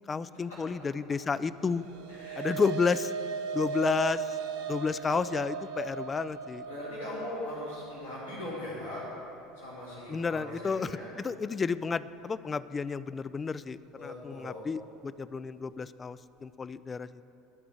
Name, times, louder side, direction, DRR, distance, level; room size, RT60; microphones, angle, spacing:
voice 1, 0.1-1.8 2.4-3.1 3.5-4.4 4.7-6.6 10.1-17.2, left 5 dB, 25° left, 16 dB, 0.3 m, -31 dB
sound 1, 1.7-10.2, right 6 dB, 65° right, 0.5 m, -38 dB
voice 2, 2.1-2.6 6.7-9.0 9.6-11.1 14.0-14.6, left 1 dB, 85° left, -12 dB, 2.7 m, -40 dB
12.0 x 4.8 x 8.0 m, 2.8 s
figure-of-eight pair, 70°, 0 cm